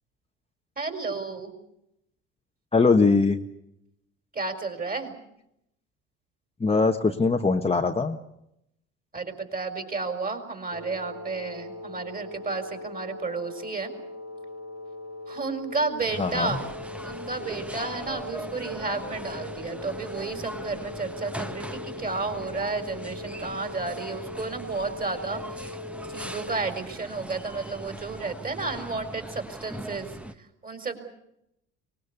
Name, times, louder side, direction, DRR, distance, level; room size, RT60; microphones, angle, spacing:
voice 1, 0.8-1.5 4.3-5.1 9.1-13.9 15.3-16.7 17.0-25.7 26.1-30.1 30.6-31.0, right 3 dB, 25° right, 7 dB, 4.6 m, -32 dB
voice 2, 2.7-3.4 6.6-8.2 16.2-16.6, left 4 dB, 15° left, 4 dB, 1.4 m, -21 dB
sound 1, 10.7-26.6, left 2 dB, 45° right, 4.8 m, -40 dB
sound 2, 16.0-30.3, right 1 dB, 5° right, 1.4 m, -40 dB
24.0 x 19.5 x 8.3 m, 0.81 s
hypercardioid pair, 65°, 35 cm